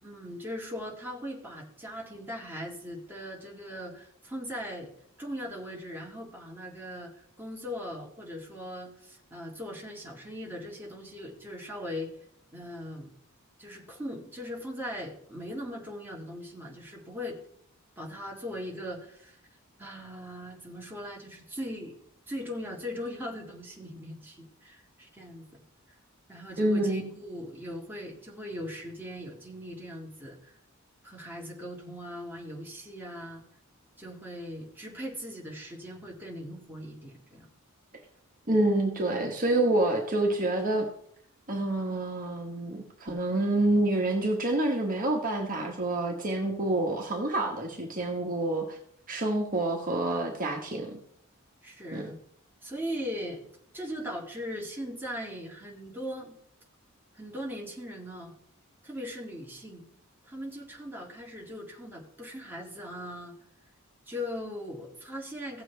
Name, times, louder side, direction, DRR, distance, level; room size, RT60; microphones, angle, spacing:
voice 1, 0.0-4.9 5.2-12.1 12.5-13.1 13.6-17.4 18.0-19.4 19.8-22.0 22.3-25.6 26.3-30.6 31.0-33.4 34.0-37.5 51.6-52.2 52.6-53.5 53.7-56.4 57.1-58.3 58.8-59.8 60.2-63.3 64.1-65.6, equal, 10° right, -2 dB, 1.9 m, -39 dB
voice 2, 26.6-27.0 38.5-40.9 41.5-48.8 49.1-51.0 51.9-52.1, right 2 dB, 40° right, 1 dB, 1.3 m, -27 dB
16.0 x 7.2 x 3.4 m, 0.68 s
head